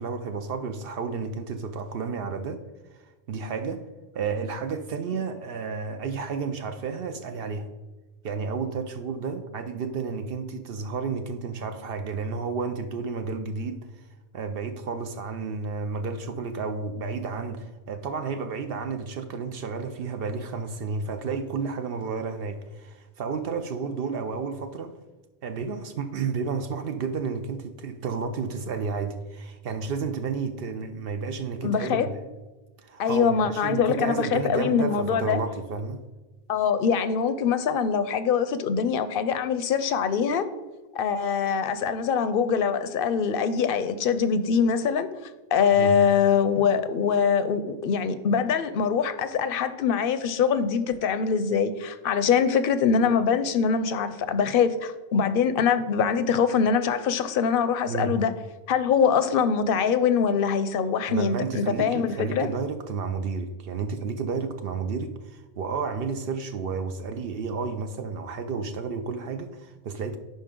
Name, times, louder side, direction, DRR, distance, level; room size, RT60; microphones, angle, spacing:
voice 1, 0.0-2.6 2.9-3.8 4.1-7.7 8.2-14.1 14.3-24.9 25.4-32.2 32.8-36.0 45.7-46.0 57.9-58.1 61.1-70.2, right 5 dB, 65° right, 8 dB, 0.7 m, -31 dB
voice 2, 31.6-32.1 33.0-35.4 36.5-40.4 40.9-45.1 45.5-58.3 58.7-62.5, left 6 dB, 65° left, 12 dB, 0.7 m, -23 dB
10.5 x 4.3 x 3.7 m, 1.2 s
omnidirectional pair, 1.1 m